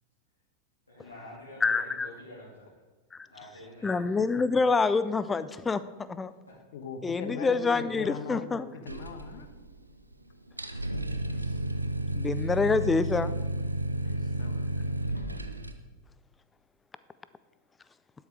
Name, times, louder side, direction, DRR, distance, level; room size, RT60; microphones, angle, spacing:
voice 1, 0.9-2.8 3.3-4.0 6.5-6.6 10.7-10.8 11.1-11.6, left 1 dB, 80° left, -9 dB, 2.9 m, -48 dB
voice 2, 1.6-2.1 3.1-3.3 3.8-6.3 7.0-8.7 12.1-13.3, left 4 dB, 15° left, 15 dB, 0.5 m, -27 dB
voice 3, 6.7-9.5 14.0-15.3, left 5 dB, 55° left, 8 dB, 1.2 m, -40 dB
sound 1, 8.9-9.9 10.1-10.2 10.5-15.7, right 1 dB, 85° right, 0.7 m, -32 dB
12.0 x 7.2 x 4.8 m, 1.3 s
figure-of-eight pair, 90°, 0 cm